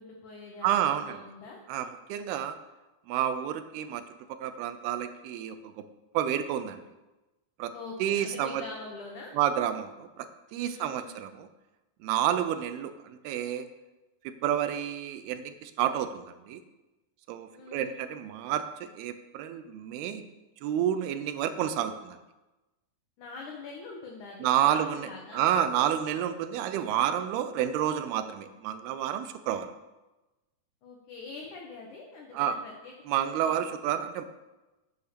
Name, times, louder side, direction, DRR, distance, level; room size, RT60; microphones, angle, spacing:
voice 1, 0.0-1.6 7.7-9.3 10.5-11.1 17.5-18.0 23.2-25.5 30.8-33.6, left 3 dB, 65° left, 0 dB, 2.1 m, -44 dB
voice 2, 0.6-1.2 1.7-2.6 3.1-4.0 4.4-5.9 6.1-6.8 7.6-7.7 8.0-8.6 9.3-11.5 12.0-13.7 14.2-16.6 17.3-20.2 20.6-22.2 24.4-29.7 32.3-32.6 33.1-34.2, right 10 dB, 80° right, 10 dB, 2.4 m, -30 dB
8.5 x 8.0 x 6.8 m, 1.1 s
omnidirectional pair, 4.9 m